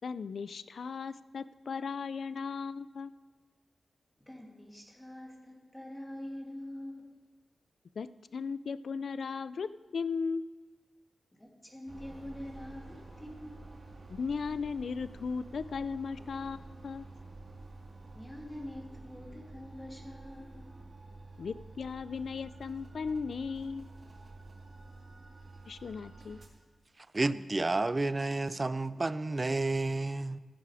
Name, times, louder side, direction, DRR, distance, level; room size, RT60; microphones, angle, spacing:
voice 1, 0.0-3.1 8.0-10.4 14.1-17.0 21.4-23.9 25.7-26.4, left 5 dB, 75° left, 0.4 m, -36 dB
voice 2, 4.2-7.1 11.3-13.6 18.1-20.7, left 1 dB, 10° left, 2.4 m, -45 dB
sound 1, 11.9-26.5, right 2 dB, 55° right, 2.2 m, -50 dB
voice 3, 27.1-30.4, right 2 dB, 30° right, 0.5 m, -30 dB
15.5 x 11.0 x 4.9 m
wide cardioid pair, 120°, 0 cm